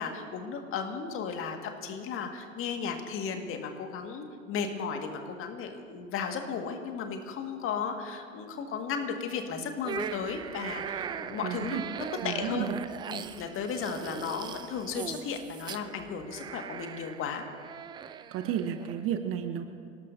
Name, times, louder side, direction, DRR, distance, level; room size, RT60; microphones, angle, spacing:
voice 1, 0.0-11.8 12.2-12.7 13.1-17.4, left 6 dB, 35° left, 4 dB, 2.0 m, -35 dB
sound 1, 9.8-19.0, right 8 dB, 10° right, 0.4 m, -40 dB
voice 2, 11.4-11.8 12.2-12.8 18.3-19.6, right 9 dB, 35° right, 7 dB, 1.1 m, -32 dB
27.0 x 18.0 x 2.8 m, 2.3 s
figure-of-eight pair, 85°, 39 cm